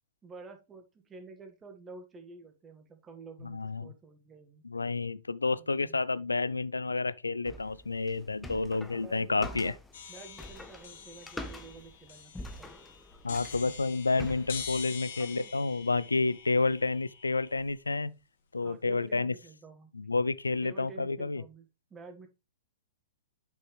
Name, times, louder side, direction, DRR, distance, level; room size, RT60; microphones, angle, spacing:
voice 1, 0.2-4.6 5.6-6.0 8.8-9.8 10.1-12.8 15.2-15.5 18.6-19.9 20.6-22.3, right 4 dB, 20° right, 1.7 m, -50 dB
voice 2, 3.4-3.9 4.6-9.7 13.2-18.1 18.5-19.3 19.9-21.4, left 3 dB, 85° left, 0.4 m, -30 dB
sound 1, 7.4-14.8, left 1 dB, 10° left, 1.0 m, -45 dB
sound 2, 9.9-17.9, left 7 dB, 60° left, 1.8 m, -45 dB
8.0 x 6.1 x 3.3 m
figure-of-eight pair, 115°, 0 cm